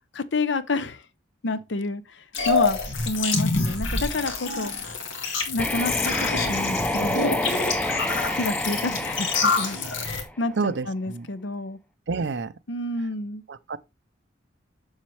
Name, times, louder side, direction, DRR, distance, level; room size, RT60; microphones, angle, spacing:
voice 1, 0.1-1.0 1.4-2.8 3.1-4.7 5.5-7.2 8.3-11.8 12.7-13.4, left 2 dB, 65° left, 0.7 m, -29 dB
sound 1, 2.3-10.2, left 4 dB, 85° left, 2.0 m, -27 dB
sound 2, 5.6-10.5, left 1 dB, 5° left, 0.5 m, -28 dB
voice 2, 10.6-11.3 12.1-12.5 13.5-13.8, right 4 dB, 60° right, 0.5 m, -28 dB
7.3 x 6.4 x 3.2 m
head